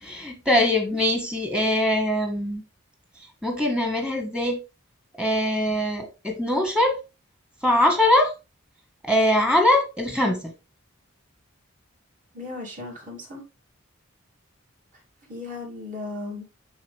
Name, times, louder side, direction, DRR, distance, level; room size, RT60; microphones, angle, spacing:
voice 1, 0.0-2.6 3.4-4.6 5.2-7.0 7.6-8.3 9.0-10.4, left 1 dB, 5° right, 1.7 m, -22 dB
voice 2, 12.3-13.4 15.3-16.4, left 3 dB, 40° right, 2.9 m, -36 dB
9.6 x 4.1 x 3.4 m
head